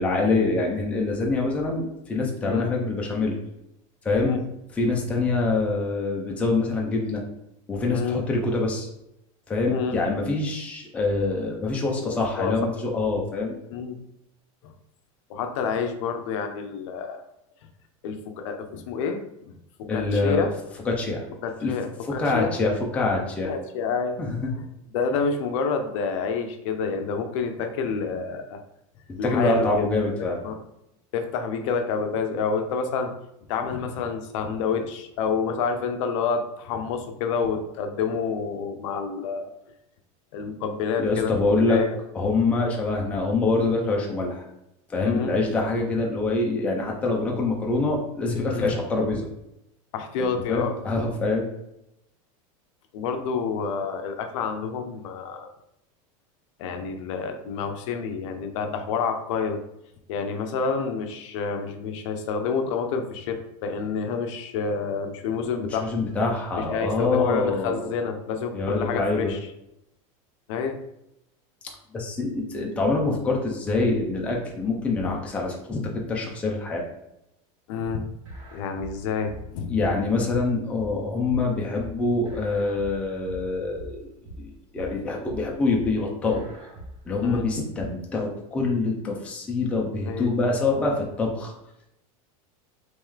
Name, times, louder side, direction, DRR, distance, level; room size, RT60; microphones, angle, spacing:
voice 1, 0.0-3.4 4.0-4.3 4.8-7.2 7.7-8.9 9.5-13.6 19.9-20.5 20.8-21.2 21.6-21.7 22.1-23.5 24.2-24.4 29.1-30.4 41.0-41.8 42.1-44.4 44.9-49.3 50.5-51.5 65.8-67.9 68.5-69.3 71.9-76.8 79.7-84.1 84.4-86.4 87.1-91.5, left 3 dB, 5° left, -1 dB, 0.4 m, -25 dB
voice 2, 7.9-8.2 9.7-10.0 12.0-12.5 13.7-14.0 14.6-14.7 15.3-17.2 18.0-20.5 21.4-22.6 23.4-24.2 24.5-24.6 24.9-28.6 29.2-29.8 30.2-30.5 31.1-33.1 33.5-39.5 40.3-42.0 45.0-45.4 45.8-46.0 48.5-48.8 49.9-50.7 52.9-55.5 56.6-59.6 60.1-65.9 66.6-69.4 70.5-70.8 77.7-78.0 78.5-79.8 85.0-85.1 87.2-87.5 90.1-90.6, left 5 dB, 65° left, 6 dB, 0.6 m, -28 dB
sound 1, 78.0-87.9, right 1 dB, 75° right, 1.3 m, -42 dB
3.1 x 3.1 x 3.7 m, 0.83 s
supercardioid pair, 165°, 18 cm